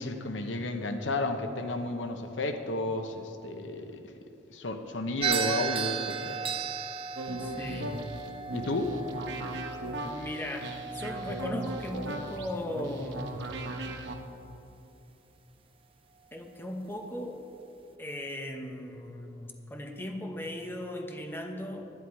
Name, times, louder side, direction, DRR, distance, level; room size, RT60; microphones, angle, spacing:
voice 1, 0.0-4.1 4.5-6.4 8.5-9.0, left 2 dB, 85° left, 7 dB, 0.9 m, -32 dB
sound 1, 5.2-13.6, right 6 dB, 30° right, 0.5 m, -36 dB
sound 2, 7.2-14.2, right 1 dB, 70° right, 1.1 m, -37 dB
voice 2, 7.4-8.0 10.0-13.3 16.3-17.4 18.0-21.9, left 1 dB, 10° left, 3 dB, 0.8 m, -37 dB
11.5 x 10.5 x 4.7 m, 2.7 s
head